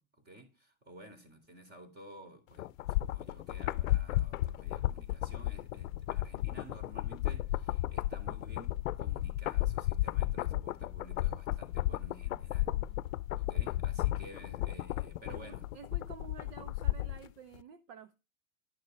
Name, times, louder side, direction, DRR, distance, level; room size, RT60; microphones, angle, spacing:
voice 1, 0.0-12.7 13.4-15.7, equal, 25° right, 3.7 m, -53 dB
sound 1, 2.6-17.3 17.6-17.7, left 15 dB, 70° left, 0.7 m, -33 dB
voice 2, 15.3-18.1, right 6 dB, 50° right, 1.2 m, -51 dB
12.0 x 6.5 x 5.3 m
hypercardioid pair, 125°, 42 cm